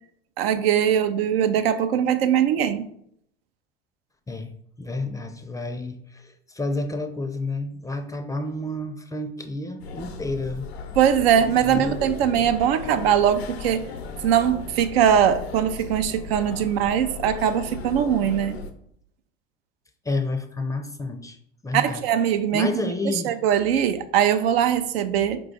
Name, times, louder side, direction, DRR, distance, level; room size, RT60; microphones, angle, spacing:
voice 1, 0.4-2.8 11.0-13.9 14.2-18.6 21.7-22.7 23.0-25.4, right 9 dB, 75° right, 10 dB, 0.5 m, -21 dB
voice 2, 4.3-10.6 11.6-12.0 20.0-21.4 21.6-22.0 22.5-23.3, left 2 dB, 10° left, 7 dB, 0.4 m, -30 dB
sound 1, 9.8-18.7, left 4 dB, 80° left, 0.6 m, -36 dB
4.6 x 2.3 x 3.8 m, 0.69 s
hypercardioid pair, 70°, 31 cm